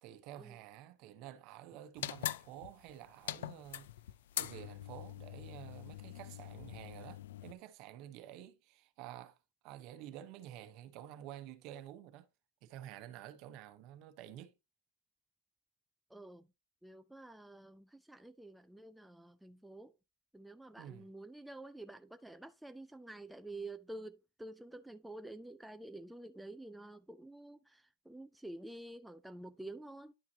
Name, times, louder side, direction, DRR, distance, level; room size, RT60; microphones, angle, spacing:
voice 1, 0.0-3.9 4.4-9.4 9.6-12.3 12.6-14.5 20.8-21.1, right 12 dB, 45° right, 0.9 m, -50 dB
sound 1, 2.0-7.5, left 13 dB, 80° left, 0.4 m, -43 dB
voice 2, 16.1-16.5 16.8-19.9 20.3-30.1, right 2 dB, 5° right, 0.4 m, -49 dB
11.0 x 5.8 x 2.8 m
supercardioid pair, 150°, 0 cm